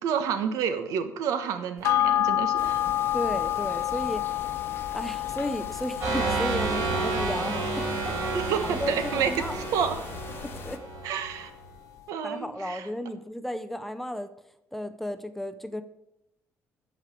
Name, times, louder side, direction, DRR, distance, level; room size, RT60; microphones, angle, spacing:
voice 1, 0.0-2.8 8.3-10.0 11.0-11.5 12.1-12.9, right 7 dB, 85° right, 9 dB, 1.4 m, -29 dB
sound 1, 1.8-10.6 11.0-11.1, left 13 dB, 70° left, 0.4 m, -30 dB
sound 2, 2.6-10.8, left 6 dB, 40° left, 0.9 m, -42 dB
voice 2, 3.1-4.3 4.9-8.2 8.6-9.5 10.4-10.8 12.2-14.3 14.7-15.8, left 1 dB, 5° left, 10 dB, 0.5 m, -34 dB
sound 3, 6.0-11.4, right 4 dB, 50° right, 5.0 m, -30 dB
13.5 x 4.9 x 8.3 m, 0.84 s
cardioid pair, 175°, 6 cm